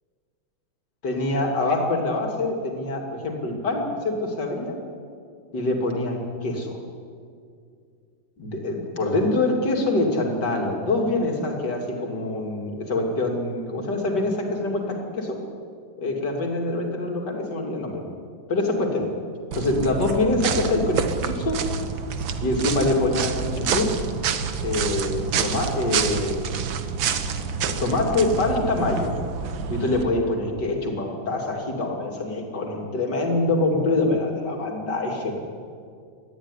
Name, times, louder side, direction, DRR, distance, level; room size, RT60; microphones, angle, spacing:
voice 1, 1.0-4.8 5.5-6.8 8.4-15.4 16.0-18.0 18.5-19.1 19.5-21.6 22.4-23.9 24.6-26.7 27.7-29.1 29.7-35.3, left 2 dB, 55° left, 1 dB, 3.5 m, -25 dB
sound 1, 19.5-30.0, right 6 dB, 75° right, 1.9 m, -28 dB
20.5 x 14.0 x 10.0 m, 2.3 s
omnidirectional pair, 2.1 m